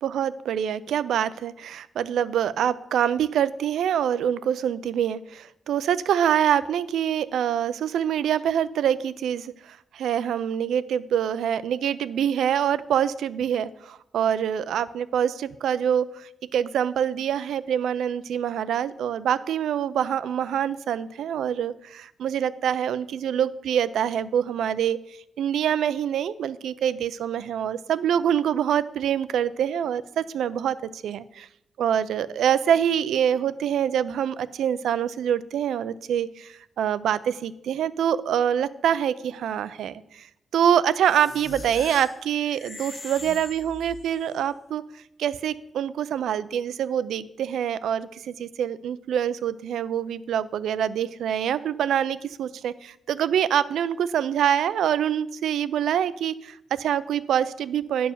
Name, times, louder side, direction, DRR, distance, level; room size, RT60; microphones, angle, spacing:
voice 1, 0.0-25.0 25.4-31.5 31.8-40.3 40.5-44.8 45.2-58.1, right 9 dB, 90° right, 15 dB, 0.5 m, -25 dB
sound 1, 41.0-44.3, left 3 dB, 35° left, 1.4 m, -41 dB
11.0 x 4.7 x 7.3 m, 0.78 s
wide cardioid pair, 135°, 0 cm